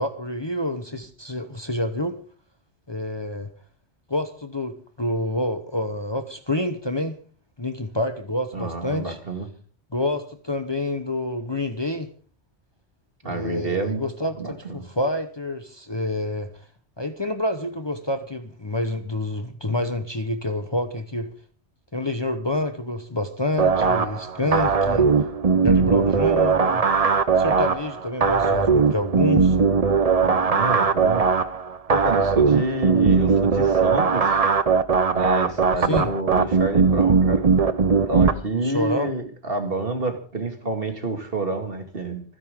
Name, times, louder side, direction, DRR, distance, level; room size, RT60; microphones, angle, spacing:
voice 1, 0.0-2.2 2.9-3.5 4.1-7.1 7.6-9.2 9.9-12.1 13.2-16.5 17.0-21.3 21.9-25.1 25.6-26.8 27.4-29.6 35.8-36.1 38.5-39.1, left 1 dB, 25° left, 7 dB, 1.1 m, -28 dB
voice 2, 8.5-9.5 13.2-14.0 14.4-14.9 24.4-24.7 30.2-31.3 31.9-34.4 35.1-37.4 38.1-42.2, right 2 dB, 55° right, 5 dB, 2.5 m, -28 dB
sound 1, 23.6-38.3, right 5 dB, 35° right, 0.8 m, -19 dB
26.0 x 10.5 x 3.8 m, 0.42 s
omnidirectional pair, 1.2 m